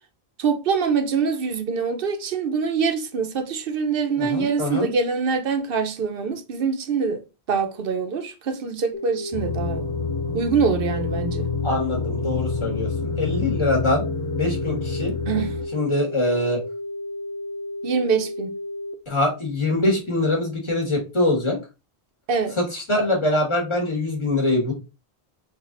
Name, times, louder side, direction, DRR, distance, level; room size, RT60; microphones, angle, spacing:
voice 1, 0.4-7.2 7.5-9.8 10.3-11.5 15.3-15.5 17.8-18.5 22.3-22.5, right 5 dB, 60° right, 0.8 m, -24 dB
voice 2, 4.2-4.9 11.6-14.0 14.3-15.1 15.7-16.6 19.1-21.6 22.6-24.7, left 2 dB, 30° left, 1.4 m, -23 dB
sound 1, 8.9-18.9, left 1 dB, 90° left, 0.9 m, -33 dB
sound 2, 9.3-15.7, left 5 dB, 55° left, 0.6 m, -28 dB
3.4 x 2.4 x 3.7 m
omnidirectional pair, 1.1 m